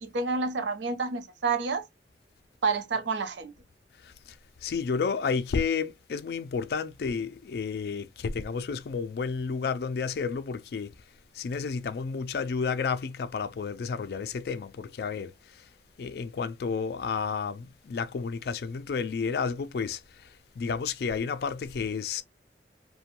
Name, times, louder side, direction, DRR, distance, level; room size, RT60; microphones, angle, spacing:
voice 1, 0.0-1.9 2.6-3.5, right 4 dB, 85° right, 0.6 m, -29 dB
voice 2, 4.0-10.9 11.3-15.7 16.0-22.2, left 5 dB, 60° left, 0.3 m, -31 dB
2.5 x 2.1 x 2.8 m
head